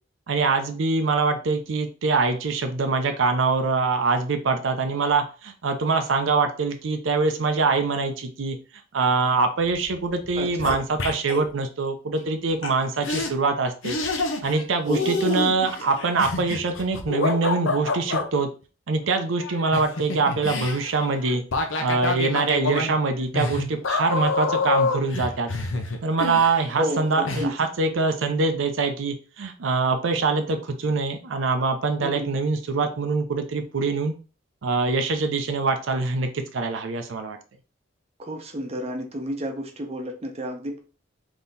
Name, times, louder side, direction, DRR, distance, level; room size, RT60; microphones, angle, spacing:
voice 1, 0.3-8.6 8.9-14.0 14.4-18.5 18.9-21.4 21.8-25.5 26.0-34.1 34.6-37.4, right 4 dB, 85° right, 6 dB, 0.6 m, -24 dB
sound 1, 9.7-10.0 10.2-11.5 12.6-12.7 13.0-13.3 13.8-14.6 14.9-18.3 19.4-26.9 27.3-27.4, left 3 dB, 90° left, 0.7 m, -27 dB
voice 2, 10.4-10.8 14.9-15.5 26.7-27.6 32.0-32.3 38.2-40.8, equal, 35° right, 3 dB, 0.7 m, -31 dB
3.7 x 2.9 x 4.0 m, 0.36 s
head